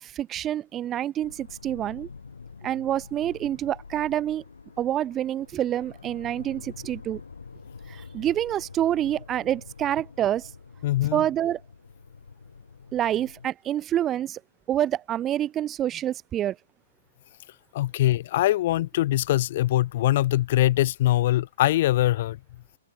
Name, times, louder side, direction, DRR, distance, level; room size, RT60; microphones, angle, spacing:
voice 1, 0.0-2.1 2.6-4.4 4.8-7.2 7.9-10.5 11.1-11.6 12.9-14.4 14.7-16.6, right 11 dB, 20° right, 0.7 m, -27 dB
sound 1, 1.2-13.5, left 5 dB, 70° left, 4.2 m, -46 dB
voice 2, 10.8-11.3 17.7-22.4, left 14 dB, 45° left, 0.7 m, -22 dB
open air
figure-of-eight pair, 115°, 0 cm